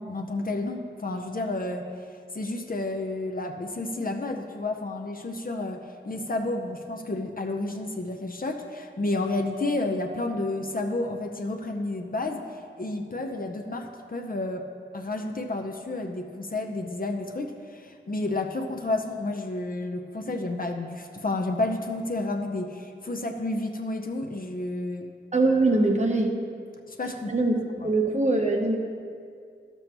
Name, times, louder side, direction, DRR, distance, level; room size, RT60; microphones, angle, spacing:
voice 1, 0.0-1.9 2.3-14.6 14.9-25.1 26.9-27.3 27.8-27.9, left 2 dB, 45° left, 3 dB, 0.6 m, -31 dB
voice 2, 25.3-26.3 27.3-27.6 27.8-28.8, right 2 dB, 35° right, 1 dB, 0.9 m, -22 dB
12.0 x 7.0 x 3.0 m, 2.2 s
wide cardioid pair, 60°, 20 cm